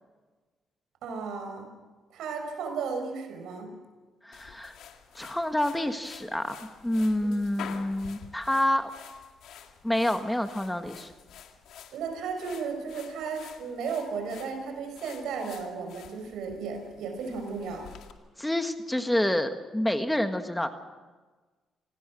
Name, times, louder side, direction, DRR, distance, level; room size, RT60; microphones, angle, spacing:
voice 1, 1.0-1.7 2.1-3.7 7.2-7.3 11.9-17.9, right 5 dB, 80° right, 5 dB, 5.5 m, -34 dB
voice 2, 4.2-4.7 5.1-8.9 9.8-11.1 18.4-20.7, left 1 dB, 5° left, 7 dB, 1.6 m, -28 dB
sound 1, 4.3-18.1, left 8 dB, 80° left, 2.1 m, -48 dB
26.5 x 19.5 x 6.3 m, 1.3 s
cardioid pair, 90°, 0 cm